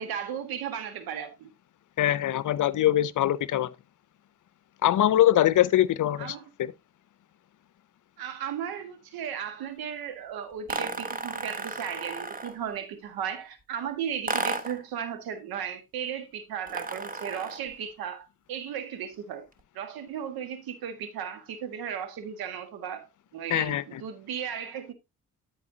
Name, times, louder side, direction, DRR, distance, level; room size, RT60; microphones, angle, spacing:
voice 1, 0.0-1.5 6.2-6.5 8.2-19.5 19.7-23.1 23.3-24.9, right 8 dB, 75° right, 1.7 m, -35 dB
voice 2, 2.0-3.7 4.8-6.7 23.5-24.0, left 12 dB, 55° left, 0.7 m, -23 dB
sound 1, 10.7-12.7 14.3-14.9 16.7-17.7, right 3 dB, 25° right, 1.3 m, -33 dB
13.0 x 4.7 x 2.8 m
hypercardioid pair, 50°, 37 cm